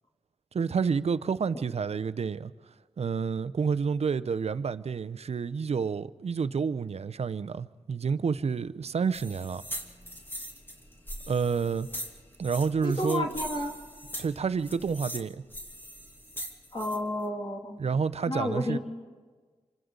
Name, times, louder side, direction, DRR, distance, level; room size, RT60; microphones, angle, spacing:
voice 1, 0.5-2.5 3.0-9.6 11.3-11.9 12.4-13.3 14.2-15.4 17.8-18.8, right 5 dB, 60° right, 14 dB, 0.6 m, -29 dB
sound 1, 9.1-17.0, equal, 20° left, 2.7 m, -41 dB
voice 2, 12.8-13.8 16.7-17.8 18.3-18.8, left 1 dB, 40° left, 0 dB, 2.6 m, -31 dB
28.0 x 25.5 x 3.9 m, 1.4 s
cardioid pair, 55°, 12 cm